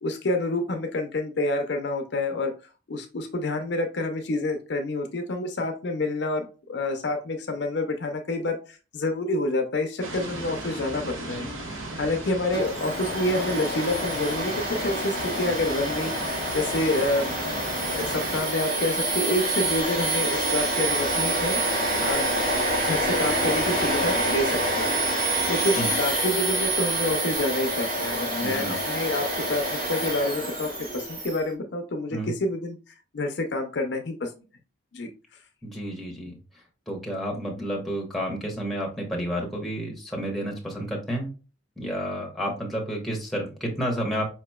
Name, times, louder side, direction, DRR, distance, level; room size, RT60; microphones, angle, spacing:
voice 1, 0.0-2.5 2.9-16.1 16.5-17.3 17.9-21.6 22.0-22.3 22.8-24.9 25.5-32.8 33.1-34.3 34.9-35.1, left 2 dB, 55° left, 6 dB, 0.5 m, -28 dB
sound 1, 10.0-18.4, right 2 dB, 85° right, 1.1 m, -36 dB
Domestic sounds home sounds, 12.5-31.4, right 1 dB, 45° right, 1.2 m, -27 dB
voice 2, 28.4-28.7 32.1-32.3 35.6-36.3 36.9-41.3 41.8-44.3, equal, ahead, -1 dB, 0.8 m, -30 dB
4.7 x 2.9 x 2.2 m, 0.34 s
head